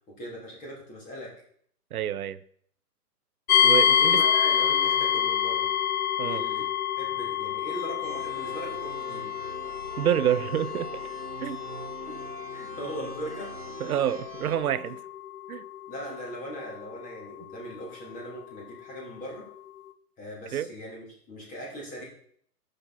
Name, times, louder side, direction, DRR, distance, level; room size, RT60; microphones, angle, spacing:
voice 1, 0.0-1.4 3.7-5.7 6.2-6.7 7.0-9.3 11.4-11.5 12.5-13.5 14.9-15.0 15.9-19.5 20.2-22.0, equal, 15° left, 2.7 m, -39 dB
voice 2, 1.9-2.4 3.6-4.2 6.2-6.4 10.0-11.0 11.4-11.6 13.8-15.0 15.5-15.6 20.5-20.7, right 10 dB, 65° right, 0.6 m, -27 dB
sound 1, 3.5-18.3, left 9 dB, 65° left, 0.9 m, -28 dB
sound 2, 8.0-14.6, right 6 dB, 25° right, 0.5 m, -43 dB
9.4 x 6.6 x 4.0 m
figure-of-eight pair, 130°, 48 cm